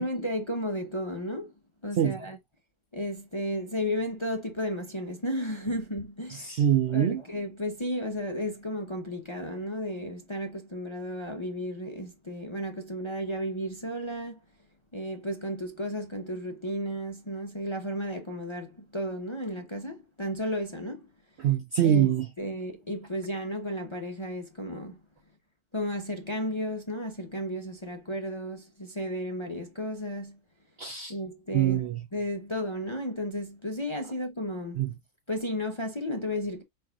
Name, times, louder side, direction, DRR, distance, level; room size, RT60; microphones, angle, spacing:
voice 1, 0.0-1.5 1.8-2.4 2.9-6.5 6.9-14.4 14.9-21.1 21.8-22.1 22.4-25.0 25.7-30.4 31.1-31.8 32.1-34.8 35.3-36.6, equal, 25° left, 0.7 m, -33 dB
voice 2, 6.3-7.2 21.4-22.3 30.8-31.1 31.5-32.0 34.8-34.9, right 10 dB, 65° right, 0.7 m, -24 dB
4.7 x 4.4 x 2.3 m
omnidirectional pair, 1.6 m